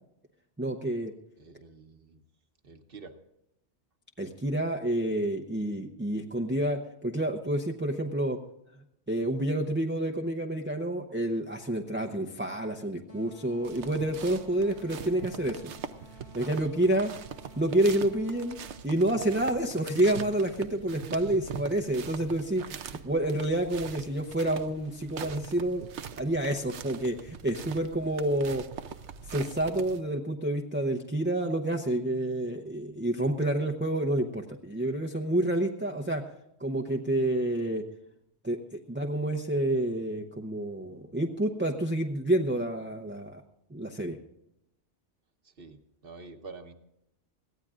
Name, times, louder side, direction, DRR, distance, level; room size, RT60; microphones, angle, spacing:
voice 1, 0.6-1.1 4.2-8.4 9.1-15.7 16.3-17.1 17.6-18.6 18.8-25.9 26.1-28.7 29.3-36.2 36.6-37.8 38.4-43.4 43.7-44.2, right 1 dB, 10° right, 1 dB, 0.7 m, -29 dB
voice 2, 1.4-2.2 2.6-3.1 21.2-21.4 45.4-46.7, right 4 dB, 55° right, 6 dB, 1.4 m, -47 dB
sound 1, 13.1-19.1, left 2 dB, 80° left, 2.5 m, -53 dB
sound 2, 13.6-30.0, right 8 dB, 80° right, 1.0 m, -43 dB
22.0 x 16.0 x 2.5 m, 0.85 s
omnidirectional pair, 1.1 m